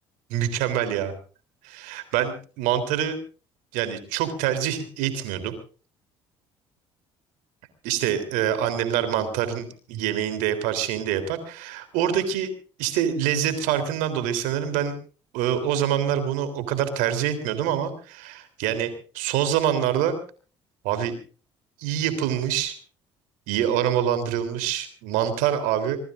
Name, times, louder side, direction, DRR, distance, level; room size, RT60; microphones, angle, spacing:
voice 1, 0.3-1.1 1.6-3.1 3.7-5.5 7.8-12.5 12.8-14.9 15.3-20.2 20.8-21.1 21.8-22.7 23.5-26.0, right 10 dB, 75° right, 11 dB, 3.5 m, -25 dB
25.5 x 20.0 x 2.6 m, 0.38 s
hypercardioid pair, 60°, 14 cm